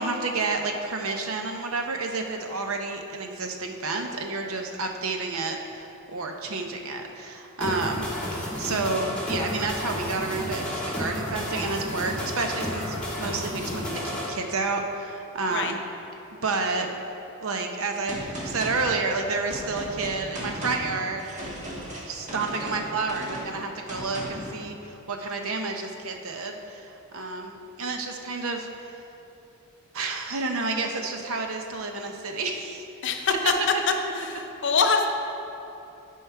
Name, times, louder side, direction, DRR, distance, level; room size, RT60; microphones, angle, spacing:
voice 1, 0.0-15.8 16.4-16.9 17.4-21.5 22.1-28.7 29.9-32.8 33.4-33.5, right 3 dB, 65° right, 4 dB, 0.7 m, -30 dB
sound 1, 7.6-14.3, left 1 dB, 5° left, 1.8 m, -32 dB
Gunshot gunfire, 18.1-24.6, right 1 dB, 35° right, 1.4 m, -36 dB
voice 2, 33.0-33.5 34.1-35.1, left 5 dB, 55° left, 4 dB, 0.6 m, -24 dB
10.0 x 4.7 x 4.6 m, 3.0 s
head